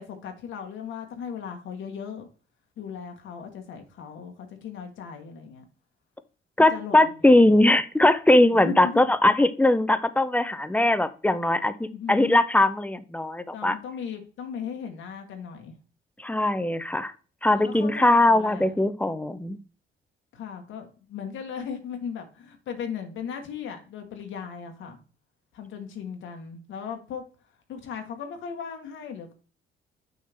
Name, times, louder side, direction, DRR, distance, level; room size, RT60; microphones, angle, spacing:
voice 1, 0.0-2.3 2.8-5.7 6.6-7.3 8.6-9.0 11.9-12.4 13.5-15.7 17.5-18.7 20.3-25.0 25.5-27.2 27.7-29.3, left 7 dB, 80° left, 4 dB, 1.4 m, -37 dB
voice 2, 6.6-13.8 16.2-17.1 17.4-19.6, left 1 dB, 5° left, 13 dB, 0.6 m, -20 dB
6.3 x 5.7 x 3.4 m, 0.37 s
cardioid pair, 90°, 20 cm